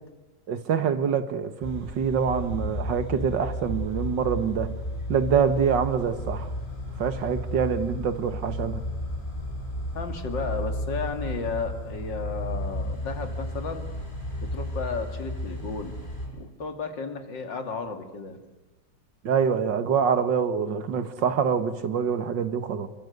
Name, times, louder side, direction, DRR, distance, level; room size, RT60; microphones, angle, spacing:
voice 1, 0.5-4.8 5.1-6.5 7.0-8.8 19.2-22.9, right 7 dB, 85° right, 2.1 m, -25 dB
sound 1, 1.6-16.3, equal, 25° left, 6.7 m, -33 dB
voice 2, 9.9-13.8 14.4-16.0 16.3-18.4, left 4 dB, 85° left, 3.1 m, -33 dB
28.0 x 23.5 x 8.1 m
omnidirectional pair, 1.9 m